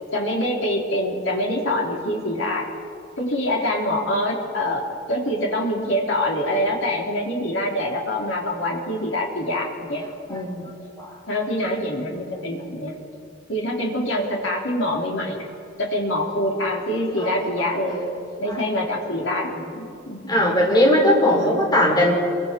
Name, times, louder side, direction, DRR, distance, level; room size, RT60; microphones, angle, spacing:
voice 1, 0.1-2.7 3.2-10.0 10.3-10.7 11.3-12.9 13.5-15.4 15.8-20.5 21.2-21.6, left 1 dB, 75° left, -2 dB, 4.1 m, -25 dB
voice 2, 20.3-22.1, left 1 dB, 20° left, -2 dB, 4.9 m, -18 dB
27.5 x 23.5 x 4.8 m, 2.4 s
head